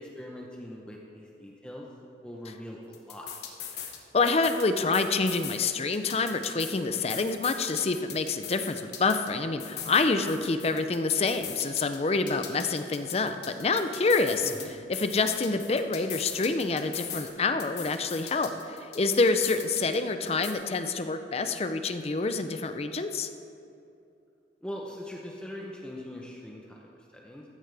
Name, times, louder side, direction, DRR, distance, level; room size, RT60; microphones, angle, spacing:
voice 1, 0.0-1.9 2.2-3.3 14.4-14.7 24.6-27.4, left 1 dB, 5° left, -2 dB, 0.8 m, -41 dB
sound 1, 2.9-4.0 4.3-5.6 5.9-9.3 9.6-12.0 12.3-14.7 14.9-17.3 17.6-20.0 20.3-20.5, left 9 dB, 65° left, 1.2 m, -40 dB
voice 2, 4.1-14.5 14.9-23.3, left 3 dB, 35° left, 8 dB, 0.5 m, -27 dB
15.0 x 10.0 x 3.4 m, 2.6 s
head